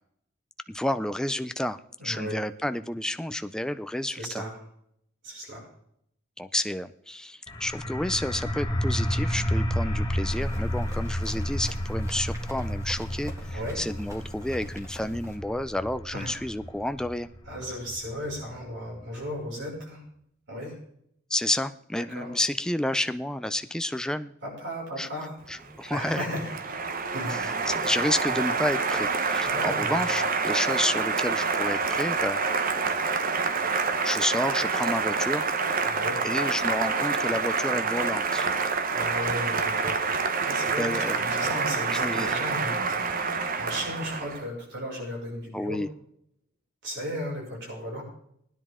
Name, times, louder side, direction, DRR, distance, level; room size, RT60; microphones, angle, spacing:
voice 1, 0.7-4.4 6.4-17.3 21.3-24.3 25.0-25.1 25.5-26.2 27.3-32.4 34.0-35.4 36.2-38.5 40.6-41.2 41.9-42.3 45.5-45.9, left 1 dB, 5° left, 10 dB, 0.4 m, -30 dB
voice 2, 2.0-2.4 4.1-4.6 5.2-5.7 13.5-13.8 16.1-16.4 17.5-20.0 20.5-20.8 22.0-22.3 24.4-25.4 25.9-26.5 27.1-27.7 29.3-30.1 35.8-36.3 38.9-40.0 40.4-45.8 46.8-48.0, equal, 60° right, -2 dB, 5.8 m, -35 dB
sound 1, 7.5-18.9, equal, 25° left, 1.4 m, -31 dB
Run, 10.3-15.4, equal, 15° right, 2.1 m, -47 dB
Applause, 25.5-44.4, right 4 dB, 45° right, 1.0 m, -27 dB
18.5 x 10.0 x 3.6 m, 0.71 s
head